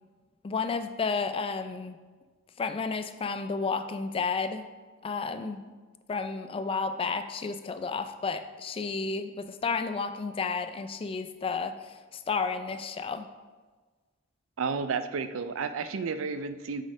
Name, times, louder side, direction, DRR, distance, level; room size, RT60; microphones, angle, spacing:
voice 1, 0.4-2.0 2.6-4.7 5.0-5.6 6.1-11.7 12.1-13.3, left 4 dB, 25° left, 10 dB, 0.3 m, -31 dB
voice 2, 14.6-16.8, right 5 dB, 75° right, 11 dB, 0.4 m, -31 dB
6.3 x 4.1 x 5.0 m, 1.4 s
head